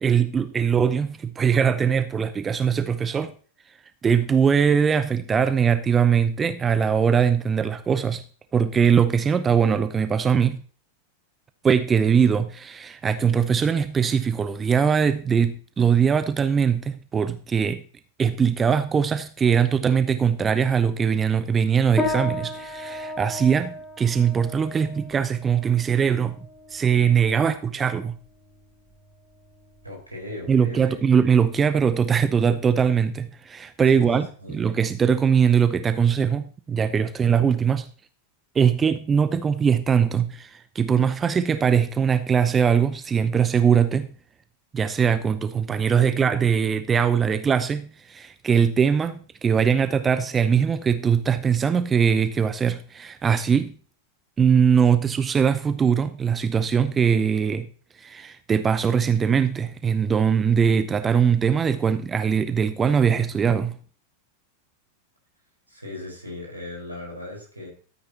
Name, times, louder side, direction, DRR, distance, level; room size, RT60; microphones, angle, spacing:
voice 1, 0.0-3.3 4.0-8.2 8.5-10.6 11.6-17.8 18.2-26.4 26.7-28.2 30.5-37.9 38.5-44.1 44.7-53.7 54.4-57.7 58.0-63.8, right 7 dB, 20° right, 0.5 m, -21 dB
sound 1, 22.0-31.6, left 1 dB, 10° left, 3.1 m, -35 dB
voice 2, 29.8-30.8 33.9-34.6 65.7-67.7, left 2 dB, 85° right, 4.5 m, -37 dB
13.0 x 8.8 x 2.8 m
figure-of-eight pair, 90°, 0 cm